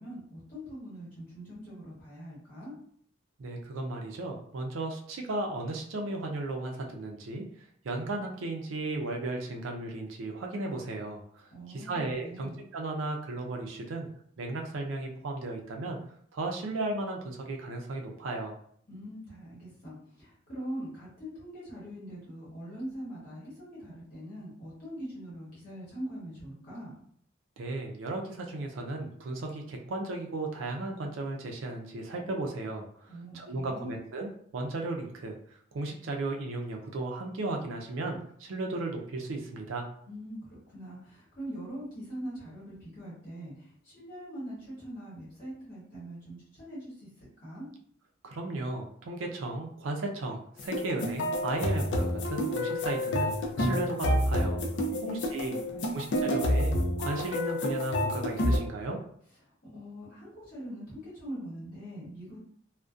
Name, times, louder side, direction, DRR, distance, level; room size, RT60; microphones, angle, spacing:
voice 1, 0.0-2.7 11.5-12.6 18.9-27.0 33.1-33.9 40.1-47.7 54.8-56.3 59.7-62.4, equal, 45° left, -8 dB, 1.0 m, -42 dB
voice 2, 3.4-7.4 7.8-14.1 14.4-16.0 16.3-18.5 27.6-35.4 35.7-39.9 48.2-53.3 53.6-54.6 55.0-55.6 55.9-59.0, right 2 dB, 85° right, 2 dB, 0.4 m, -35 dB
sound 1, 50.6-58.6, left 1 dB, 65° left, 0.4 m, -29 dB
2.5 x 2.1 x 2.3 m, 0.62 s
head